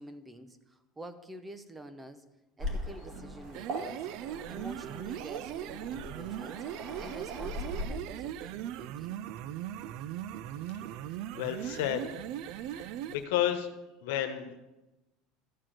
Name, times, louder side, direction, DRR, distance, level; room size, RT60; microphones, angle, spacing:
voice 1, 0.0-2.2 2.6-9.2 10.8-10.9, right 1 dB, 10° right, 11 dB, 0.7 m, -48 dB
Waves surf, 2.6-7.8, left 1 dB, 35° right, 2.0 m, -40 dB
sound 1, 3.4-13.2, right 12 dB, 60° right, 0.4 m, -39 dB
voice 2, 11.3-12.1 12.7-13.7 14.0-14.6, left 11 dB, 80° left, 7 dB, 1.3 m, -32 dB
13.5 x 5.0 x 7.4 m, 1.0 s
cardioid pair, 150°, 0 cm